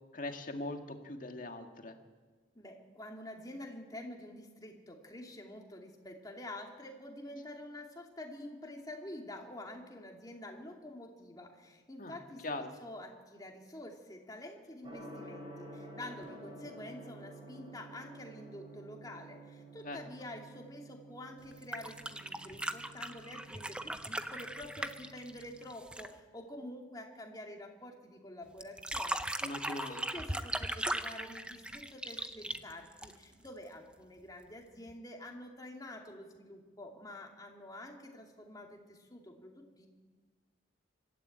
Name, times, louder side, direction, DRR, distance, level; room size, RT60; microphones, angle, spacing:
voice 1, 0.1-2.0 12.0-12.2 12.4-12.7 19.8-20.0 29.4-30.1, left 2 dB, 45° left, 5 dB, 1.8 m, -41 dB
voice 2, 2.5-12.4 12.8-39.9, left 1 dB, 20° left, 1 dB, 2.7 m, -48 dB
Gong, 14.8-25.7, right 2 dB, 30° right, 3.9 m, -52 dB
sound 1, 21.5-26.2 28.6-33.5 34.9-35.0, right 1 dB, 5° right, 0.7 m, -38 dB
25.0 x 13.0 x 8.7 m, 1.4 s
head